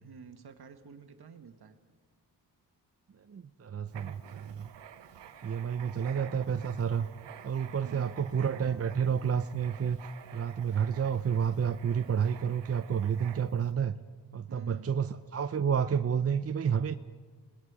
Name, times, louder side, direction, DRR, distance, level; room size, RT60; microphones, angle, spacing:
voice 1, 0.0-1.8 5.8-6.1 7.8-8.1 14.5-15.0, right 6 dB, 65° right, 8 dB, 1.6 m, -50 dB
voice 2, 3.3-4.7 5.4-7.1 7.4-10.0 10.3-14.0 14.3-16.9, right 7 dB, 35° right, 10 dB, 0.6 m, -30 dB
Writing, 3.9-13.7, right 9 dB, 85° right, 1.0 m, -50 dB
27.5 x 19.0 x 4.9 m, 1.5 s
cardioid pair, 60°, 42 cm